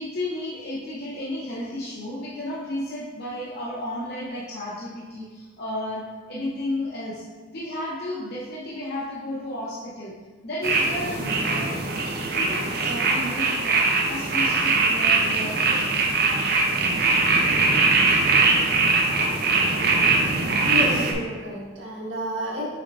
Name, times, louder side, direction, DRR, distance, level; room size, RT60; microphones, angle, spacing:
voice 1, 0.0-7.2 7.5-10.2 10.4-11.7 12.3-15.8, left 1 dB, 55° left, -6 dB, 0.9 m, -33 dB
sound 1, 10.6-21.1, right 3 dB, 50° right, 0.7 m, -21 dB
voice 2, 20.6-22.6, left 1 dB, 70° right, -6 dB, 1.8 m, -30 dB
6.4 x 5.8 x 2.6 m, 1.4 s
head